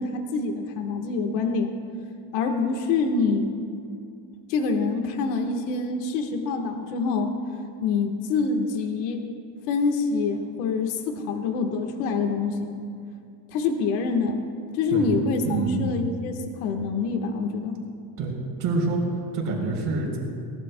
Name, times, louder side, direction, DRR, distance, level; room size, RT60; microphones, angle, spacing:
voice 1, 0.0-1.7 2.3-3.5 4.5-7.3 7.8-9.2 9.7-12.7 13.5-14.4 14.7-17.8, left 4 dB, 75° left, 4 dB, 1.5 m, -26 dB
voice 2, 15.4-15.9 18.2-20.2, right 3 dB, 40° right, 0 dB, 3.7 m, -27 dB
22.5 x 19.5 x 2.2 m, 2.4 s
cardioid pair, 170°, 49 cm